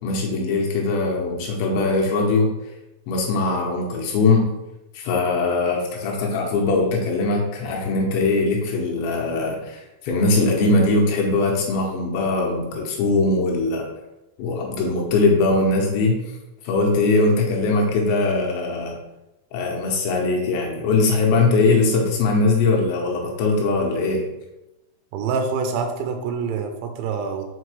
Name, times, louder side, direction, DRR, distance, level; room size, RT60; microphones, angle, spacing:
voice 1, 0.0-2.5 3.1-4.5 4.9-13.9 14.4-16.2 16.6-19.0 19.5-24.3, left 3 dB, 75° left, 0 dB, 3.0 m, -21 dB
voice 2, 25.1-27.5, right 5 dB, 85° right, 4 dB, 3.0 m, -26 dB
6.5 x 5.1 x 3.2 m, 0.97 s
omnidirectional pair, 5.7 m